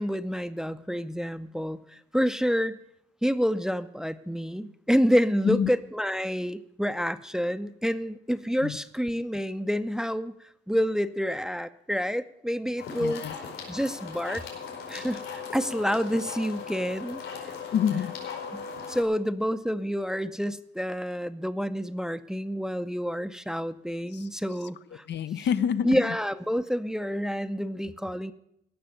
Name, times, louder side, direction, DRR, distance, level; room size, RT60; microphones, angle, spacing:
voice 1, 0.0-2.8 3.2-10.3 10.7-13.2 13.7-14.5 14.9-17.2 18.5-25.0 25.4-25.5 25.8-28.3, equal, 5° right, 12 dB, 0.6 m, -28 dB
sound 1, 12.8-19.0, left 6 dB, 85° left, 5.0 m, -38 dB
voice 2, 13.0-13.3 17.7-18.1 24.1-24.3 25.1-26.0, left 8 dB, 65° left, 11 dB, 0.7 m, -27 dB
16.5 x 6.2 x 9.0 m, 0.76 s
cardioid pair, 90°, 20 cm